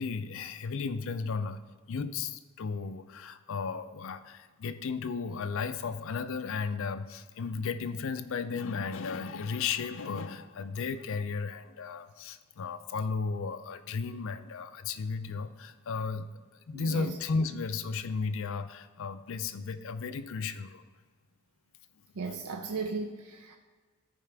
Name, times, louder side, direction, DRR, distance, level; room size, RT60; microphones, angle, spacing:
voice 1, 0.0-1.6 1.9-16.3 16.7-20.8, left 5 dB, 65° left, 11 dB, 0.5 m, -34 dB
voice 2, 16.7-17.1 22.2-23.6, right 4 dB, 85° right, 4 dB, 0.5 m, -36 dB
13.5 x 4.8 x 3.4 m, 1.4 s
head